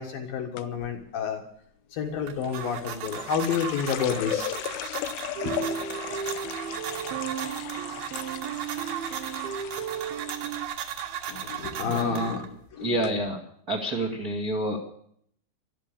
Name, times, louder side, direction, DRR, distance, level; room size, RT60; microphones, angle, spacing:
voice 1, 0.0-1.4 1.9-4.6 5.4-5.7 11.3-12.5 12.7-12.9, left 7 dB, 65° left, 3 dB, 2.7 m, -30 dB
sound 1, 0.6-1.0 2.4-10.4 10.7-11.3 11.6-11.9 12.6-12.7 13.0-13.1, left 13 dB, 80° left, 2.6 m, -37 dB
sound 2, 2.0-12.7, right 9 dB, 60° right, 3.1 m, -37 dB
sound 3, 5.4-10.7, right 7 dB, 75° right, 2.2 m, -35 dB
voice 2, 11.9-12.3 12.8-13.4 13.7-14.8, right 1 dB, 40° right, 1 dB, 1.3 m, -28 dB
14.0 x 12.5 x 6.9 m, 0.66 s
omnidirectional pair, 5.4 m